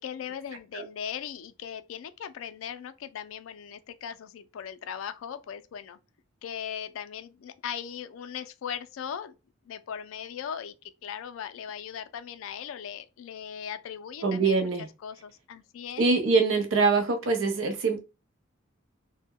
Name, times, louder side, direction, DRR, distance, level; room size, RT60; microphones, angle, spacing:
voice 1, 0.0-6.0 6.4-9.3 9.7-10.7 11.0-14.7 15.0-16.0, left 8 dB, 75° left, 0.3 m, -38 dB
voice 2, 14.2-14.9 16.0-18.0, right 4 dB, 70° right, 0.6 m, -24 dB
2.1 x 2.1 x 3.5 m
head